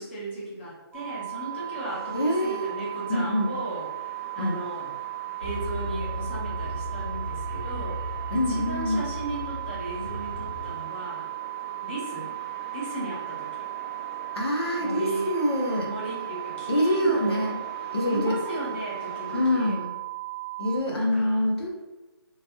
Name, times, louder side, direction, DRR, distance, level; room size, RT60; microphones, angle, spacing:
voice 1, 0.0-3.9 4.3-4.9 5.4-11.3 11.8-12.3 12.7-13.6 14.8-15.3 15.8-17.4 18.1-19.8 20.9-21.4, right 1 dB, 25° left, -6 dB, 0.8 m, -36 dB
sound 1, 0.9-20.8, right 19 dB, 90° right, 0.7 m, -36 dB
sound 2, 1.5-19.5, right 1 dB, ahead, 0.4 m, -46 dB
voice 2, 2.1-2.7 3.1-3.6 4.4-4.6 8.3-9.0 14.3-15.9 16.7-17.6 17.9-18.4 19.3-19.9 20.6-21.8, left 1 dB, 70° left, -1 dB, 0.8 m, -25 dB
sound 3, 5.4-10.7, right 1 dB, 45° right, 0.9 m, -35 dB
3.1 x 2.7 x 2.2 m, 1.1 s
hypercardioid pair, 165°, 14 cm